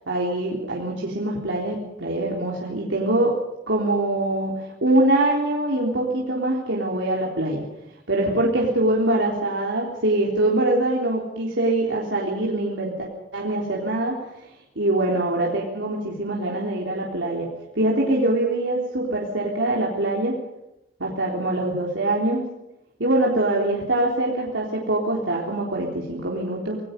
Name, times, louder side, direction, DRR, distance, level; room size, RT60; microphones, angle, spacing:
voice 1, 0.1-3.3 3.7-4.5 4.8-7.6 8.1-13.1 13.3-14.2 14.8-17.5 17.8-20.3 21.0-22.4 23.0-26.8, right 1 dB, 80° right, -3 dB, 3.7 m, -23 dB
26.5 x 19.5 x 5.4 m, 0.90 s
head